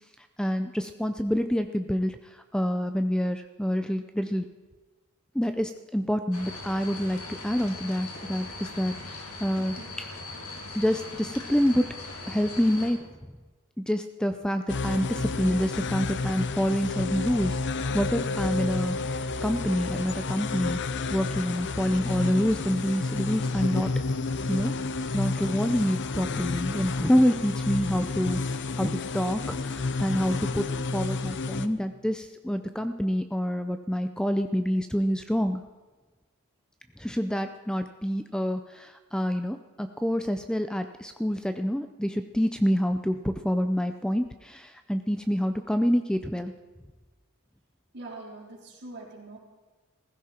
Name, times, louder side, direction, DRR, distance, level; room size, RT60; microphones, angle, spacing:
voice 1, 0.4-4.5 5.3-10.1 10.7-11.9 12.3-13.0 13.8-20.8 21.1-23.9 24.5-24.7 25.1-30.6 30.9-35.6 37.0-46.5, equal, 5° left, 8 dB, 0.5 m, -27 dB
sound 1, 6.3-12.9, left 2 dB, 70° left, 3.1 m, -40 dB
voice 2, 9.5-10.0 47.9-49.4, right 2 dB, 50° right, -2 dB, 3.9 m, -43 dB
sound 2, 14.7-31.7, left 3 dB, 55° left, 0.7 m, -30 dB
16.0 x 15.0 x 4.4 m, 1.3 s
head